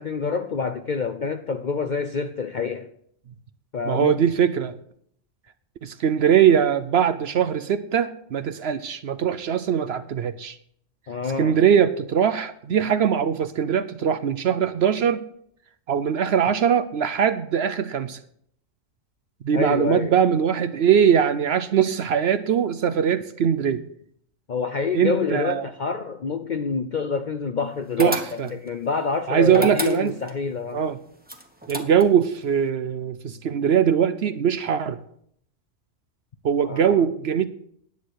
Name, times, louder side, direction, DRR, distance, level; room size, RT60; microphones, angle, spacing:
voice 1, 0.0-2.9 3.7-4.2 11.1-11.6 19.5-20.2 24.5-30.8 36.7-37.0, left 5 dB, 55° left, 0.5 m, -27 dB
voice 2, 3.9-4.7 5.8-10.6 11.4-15.2 15.9-18.2 19.4-23.8 24.9-25.6 28.0-28.5 29.3-30.1 30.7-31.0 31.7-35.0 36.4-37.4, right 8 dB, 60° right, 0.7 m, -21 dB
sound 1, 28.0-28.7 29.5-30.4 31.3-32.3, equal, 5° right, 1.1 m, -30 dB
10.5 x 8.2 x 6.3 m
omnidirectional pair, 1.4 m